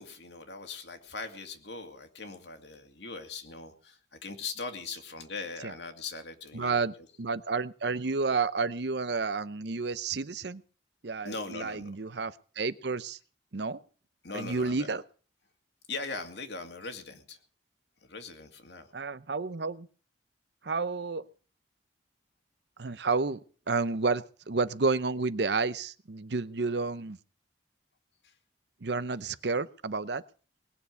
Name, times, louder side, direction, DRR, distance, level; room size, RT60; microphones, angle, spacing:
voice 1, 0.0-6.8 11.2-11.9 14.2-14.9 15.9-17.4 18.0-18.9 28.2-28.3, left 4 dB, 70° left, 6 dB, 2.4 m, -40 dB
voice 2, 6.5-10.6 11.0-13.2 13.5-13.8 14.3-15.0 18.9-19.9 20.6-21.3 22.8-23.4 23.7-27.2 28.8-30.2, right 4 dB, 65° right, 15 dB, 0.8 m, -30 dB
20.0 x 7.1 x 9.4 m, 0.42 s
head